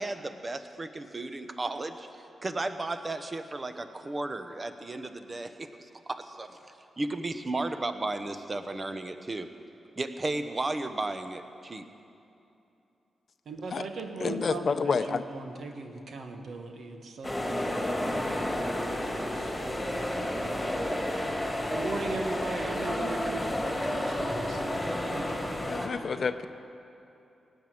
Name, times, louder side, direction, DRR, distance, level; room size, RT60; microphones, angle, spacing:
voice 1, 0.0-6.6 7.0-9.5 10.0-11.9, right 2 dB, 35° right, 8 dB, 1.1 m, -34 dB
voice 2, 13.4-20.9 21.7-25.4, right 3 dB, 70° right, 4 dB, 1.5 m, -39 dB
voice 3, 14.2-15.2 25.7-26.5, left 5 dB, 60° left, 11 dB, 0.6 m, -29 dB
sound 1, 17.2-25.9, left 1 dB, 10° left, 2.9 m, -31 dB
17.5 x 9.0 x 7.8 m, 2.8 s
cardioid pair, 55°, 0 cm